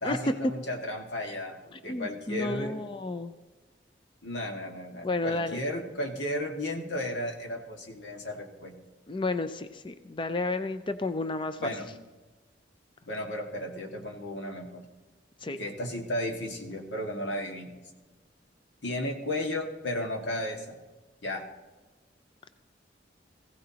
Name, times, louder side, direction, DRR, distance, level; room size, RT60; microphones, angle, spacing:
voice 1, 0.0-2.8 4.2-8.7 11.6-11.9 13.0-14.8 15.6-17.7 18.8-20.8 21.2-21.4, left 1 dB, 85° left, 1 dB, 1.9 m, -34 dB
voice 2, 1.7-3.3 5.0-5.6 9.1-11.7 15.4-15.6, left 3 dB, 30° left, 10 dB, 0.4 m, -32 dB
20.5 x 16.0 x 2.9 m, 1.3 s
head